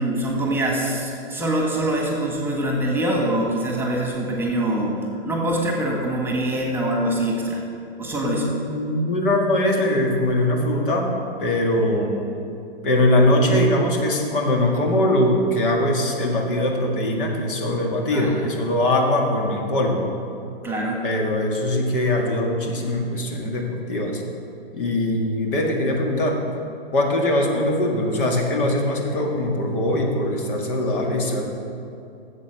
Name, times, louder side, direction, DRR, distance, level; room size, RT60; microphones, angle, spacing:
voice 1, 0.0-7.6 8.0-8.5 11.8-12.3 18.1-18.5 20.6-21.0, right 1 dB, 5° right, -1 dB, 1.6 m, -24 dB
voice 2, 8.2-12.2 12.8-20.1 21.0-24.2 24.7-26.4 26.9-31.5, left 1 dB, 60° left, 1 dB, 2.0 m, -21 dB
11.5 x 7.7 x 6.4 m, 2.6 s
hypercardioid pair, 120°, 31 cm